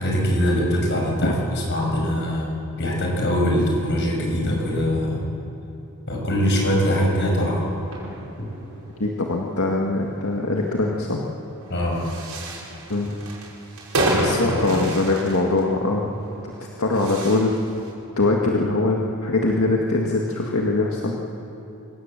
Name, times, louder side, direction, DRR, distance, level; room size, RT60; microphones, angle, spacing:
voice 1, 0.0-5.3 6.1-7.7 8.4-8.5 11.7-12.1 14.1-14.9, equal, 50° left, -1 dB, 6.1 m, -23 dB
sound 1, 7.7-17.9, right 1 dB, 75° right, 5.7 m, -30 dB
voice 2, 9.0-11.2 12.9-13.1 14.4-16.0 16.8-17.6 18.2-21.2, left 2 dB, 70° left, -1 dB, 1.9 m, -22 dB
26.0 x 17.5 x 7.6 m, 3.0 s
head